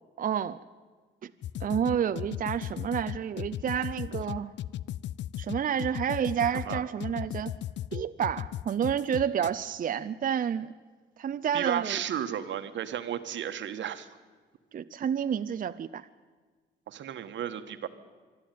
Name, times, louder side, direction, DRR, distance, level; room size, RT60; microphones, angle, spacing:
voice 1, 0.2-0.6 1.2-1.3 1.6-4.5 5.4-7.5 7.9-10.7 11.2-12.0 14.7-16.1, right 8 dB, 45° right, 0.6 m, -29 dB
sound 1, 1.4-9.5, left 12 dB, 65° left, 0.5 m, -35 dB
voice 2, 11.5-14.1 16.9-17.9, right 10 dB, 70° right, 1.5 m, -33 dB
25.5 x 11.5 x 9.3 m
cardioid pair, 90°, 20 cm